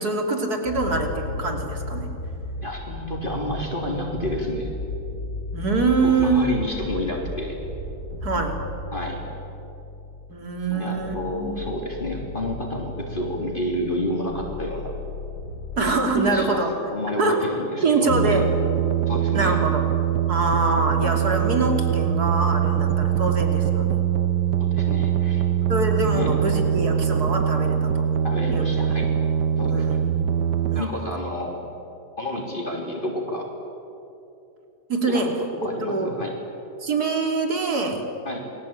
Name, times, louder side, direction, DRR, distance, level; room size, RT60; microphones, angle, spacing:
voice 1, 0.0-2.1 5.5-6.5 8.2-8.6 10.3-11.6 15.8-16.7 17.2-17.4 17.8-18.5 19.3-19.9 20.3-24.0 25.7-28.1 28.5-28.7 29.7-30.0 30.7-30.9 34.9-35.3 35.6-36.2 36.8-38.0, right 3 dB, 65° right, 3 dB, 3.7 m, -24 dB
sound 1, 0.6-8.6, left 1 dB, 50° left, 2.7 m, -35 dB
sound 2, 0.7-2.9 3.3-10.5 11.0-16.0, left 3 dB, 70° left, 4.8 m, -37 dB
voice 2, 2.6-4.7 6.0-7.6 8.9-9.2 10.7-14.9 16.3-16.6 16.9-18.4 19.1-19.6 24.6-25.5 26.1-26.3 28.2-29.1 29.6-29.9 30.7-31.7 32.2-33.5 35.1-36.3 38.3-38.5, left 1 dB, 30° left, -1 dB, 3.6 m, -30 dB
sound 3, 18.1-30.8, right 9 dB, 90° right, 1.6 m, -23 dB
29.5 x 22.0 x 8.9 m, 2.9 s
omnidirectional pair, 1.8 m